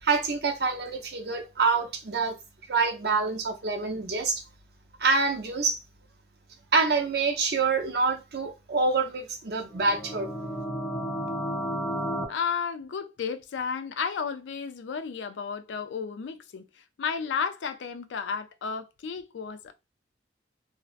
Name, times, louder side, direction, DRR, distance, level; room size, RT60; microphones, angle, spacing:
voice 1, 0.0-2.4 2.7-4.4 5.0-5.8 6.7-10.3, right 4 dB, 60° right, 0.6 m, -26 dB
sound 1, 9.7-12.3, equal, 10° left, 0.5 m, -32 dB
voice 2, 12.3-19.7, left 6 dB, 75° left, 0.4 m, -33 dB
2.6 x 2.1 x 2.4 m
head